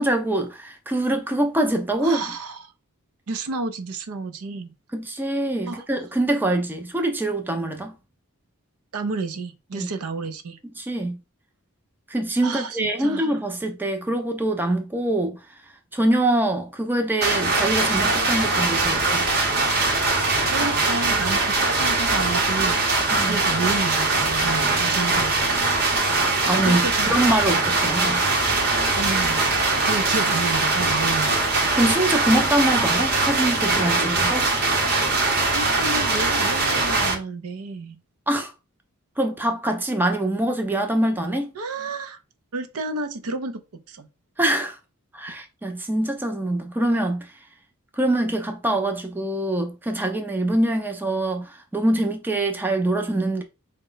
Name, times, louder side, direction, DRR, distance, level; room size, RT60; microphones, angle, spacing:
voice 1, 0.0-2.2 4.9-7.9 9.8-9.9 10.8-11.2 12.1-15.4 15.9-19.3 23.1-23.4 26.5-28.2 31.7-34.5 38.3-38.5 39.2-41.5 44.4-44.8 45.1-47.3 47.9-53.4, right 1 dB, 10° right, 0.4 m, -24 dB
voice 2, 2.0-2.7 3.3-4.7 5.6-5.8 8.9-10.6 12.4-13.3 20.4-25.6 26.6-27.2 29.0-29.4 29.8-31.4 34.0-34.1 35.5-38.0 41.5-42.2 42.5-43.6 43.9-44.1, right 3 dB, 75° right, 0.6 m, -31 dB
sound 1, 17.2-37.1, right 3 dB, 45° right, 0.9 m, -21 dB
3.9 x 2.2 x 3.8 m
head